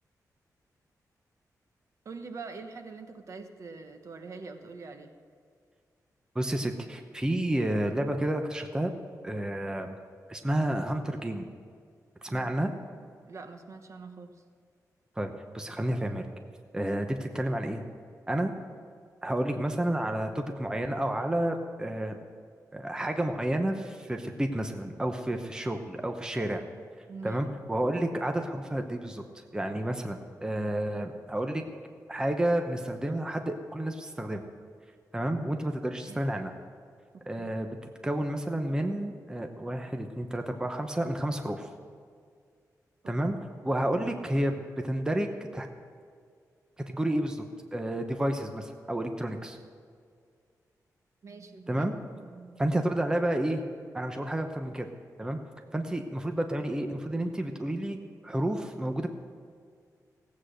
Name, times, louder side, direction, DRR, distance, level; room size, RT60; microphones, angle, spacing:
voice 1, 2.0-5.1 12.3-12.5 13.2-14.3 27.1-27.4 36.1-36.2 43.0-43.1 51.2-51.9 52.2-52.8, right 4 dB, 50° right, 6 dB, 1.1 m, -44 dB
voice 2, 6.3-8.9 9.2-10.0 10.3-11.5 12.2-12.7 15.2-16.3 16.7-17.8 18.3-18.5 19.2-22.2 22.7-26.6 27.2-29.2 29.5-31.6 32.1-34.4 35.1-36.5 37.3-41.7 43.1-43.4 43.6-45.7 46.9-47.4 47.7-49.6 51.7-52.0 52.6-53.6 53.9-54.9 55.2-55.4 55.7-58.0 58.2-59.1, right 1 dB, 10° right, 5 dB, 0.8 m, -30 dB
16.5 x 8.4 x 6.4 m, 2.1 s
wide cardioid pair, 140°, 6 cm